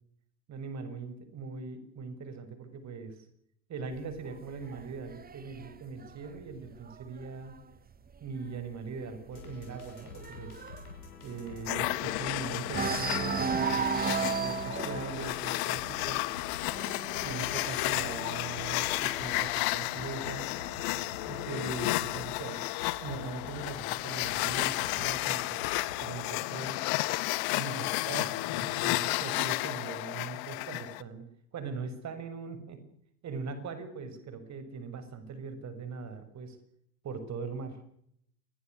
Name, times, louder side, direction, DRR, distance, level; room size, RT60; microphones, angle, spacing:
voice 1, 0.5-3.2 3.7-7.6 8.2-10.6 11.2-16.2 17.2-20.4 21.3-22.7 23.0-25.6 26.0-26.8 27.5-32.8 33.2-36.6 37.0-37.8, right 4 dB, 40° right, 10 dB, 6.5 m, -41 dB
sound 1, 3.9-7.5 8.0-8.3 8.5-8.6 9.0-12.3 12.7-19.2 20.1-21.1, right 6 dB, 20° right, 1.6 m, -36 dB
sound 2, 9.3-26.0, left 5 dB, 85° left, 7.5 m, -46 dB
sound 3, 11.7-31.0, left 22 dB, 55° left, 1.5 m, -32 dB
28.0 x 22.5 x 6.5 m, 0.71 s
hypercardioid pair, 80°, 44 cm